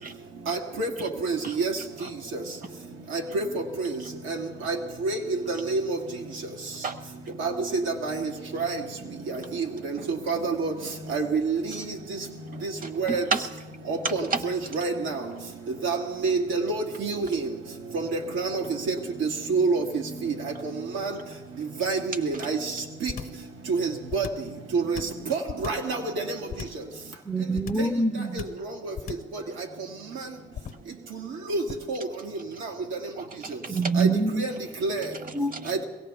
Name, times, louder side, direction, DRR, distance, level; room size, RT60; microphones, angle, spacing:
voice 1, 0.5-0.9 1.2-1.7 3.3-3.4 4.3-4.4 4.7-4.8 5.0-5.2 5.5-6.0 7.4-7.5 8.0-8.2 8.5-8.8 9.8-9.9 10.3-10.7 11.1-11.6 13.0-13.2 13.9-15.2 15.8-16.0 16.2-17.3 18.3-18.9 19.2-19.8 20.2-20.3 20.9-21.1 21.8-22.6 23.0-23.1 23.7-24.2 24.7-25.0 25.3-26.0 31.5-31.6 31.9-32.1 34.0-34.1 34.4-34.5 34.8-35.0 35.7-35.8, right 4 dB, 85° right, 2 dB, 1.8 m, -26 dB
voice 2, 12.5-13.4 14.0-14.4 22.3-22.5 32.5-32.6 33.2-33.9 35.1-35.7, right 4 dB, 45° right, 9 dB, 1.2 m, -33 dB
sound 1, 23.1-23.5 24.1-24.5 24.9-25.9 26.5-26.9 27.6-28.0 28.4-28.7 29.0-29.4 30.5-30.9 31.7-32.0, left 8 dB, 45° left, 0.8 m, -37 dB
voice 3, 27.3-28.4 33.7-34.5 35.3-35.5, right 3 dB, 5° right, 3 dB, 0.6 m, -25 dB
22.5 x 17.5 x 3.4 m, 1.2 s
cardioid pair, 90°, 20 cm